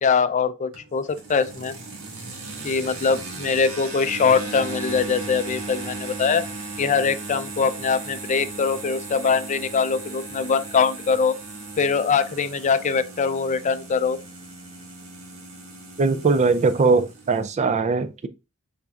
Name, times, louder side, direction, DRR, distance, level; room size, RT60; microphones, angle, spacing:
voice 1, 0.0-1.7 2.6-6.4 6.8-11.4 11.8-14.2, left 5 dB, 35° left, 0.4 m, -22 dB
sound 1, 0.7-17.5, right 3 dB, 85° right, 1.7 m, -37 dB
voice 2, 16.0-18.3, right 4 dB, 35° right, 0.4 m, -20 dB
5.7 x 3.9 x 2.4 m
head